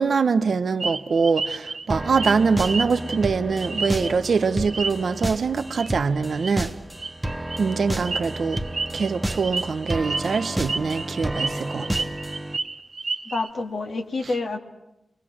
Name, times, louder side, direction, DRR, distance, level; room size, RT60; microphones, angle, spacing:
voice 1, 0.0-6.7 7.6-8.6 8.9-11.9, right 5 dB, 75° right, 0.8 m, -23 dB
sound 1, 0.8-4.3 4.6-5.2 5.7-5.9 6.2-6.5 7.0-13.5, right 3 dB, 55° right, 1.1 m, -31 dB
sound 2, 1.9-12.6, right 1 dB, 10° right, 1.1 m, -31 dB
voice 2, 13.2-14.6, left 3 dB, 70° left, 2.2 m, -28 dB
29.5 x 22.0 x 6.2 m
cardioid pair, 60°, 0 cm